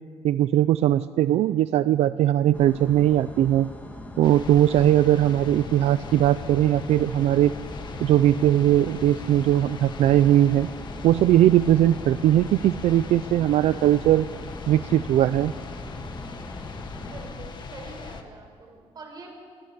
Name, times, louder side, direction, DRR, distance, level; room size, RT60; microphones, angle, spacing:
voice 1, 0.2-3.7 4.2-7.5 8.0-10.7 11.0-14.3 14.7-15.5, right 12 dB, 80° right, 14 dB, 0.5 m, -20 dB
sound 1, 2.5-17.3, left 1 dB, 15° left, 2.8 m, -40 dB
sound 2, 4.2-18.2, left 5 dB, 45° left, 1.6 m, -40 dB
voice 2, 17.0-19.4, right 3 dB, 40° right, 2 dB, 5.3 m, -44 dB
27.5 x 21.5 x 6.8 m, 2.1 s
cardioid pair, 160°, 11 cm